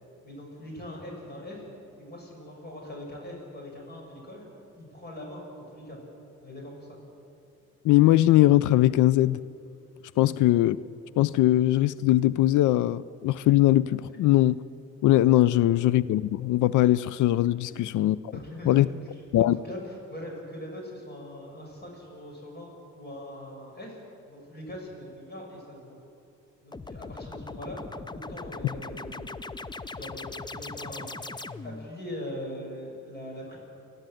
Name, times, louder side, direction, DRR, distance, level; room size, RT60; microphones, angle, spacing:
voice 1, 0.2-1.6 2.0-4.5 4.8-6.0 6.4-7.0 17.6-17.7 18.3-19.0 19.4-24.0 24.2-26.0 26.6-27.8 28.1-29.3 29.9-31.2 31.6-33.6, left 1 dB, 35° left, 6.5 m, -41 dB
voice 2, 7.8-9.4 10.2-10.8 11.2-14.6 15.0-18.2 18.7-18.9 19.3-19.6, left 15 dB, 80° left, 0.5 m, -21 dB
sound 1, 26.7-31.9, left 3 dB, 15° left, 0.6 m, -39 dB
29.0 x 12.0 x 7.8 m
cardioid pair, 90°, 30 cm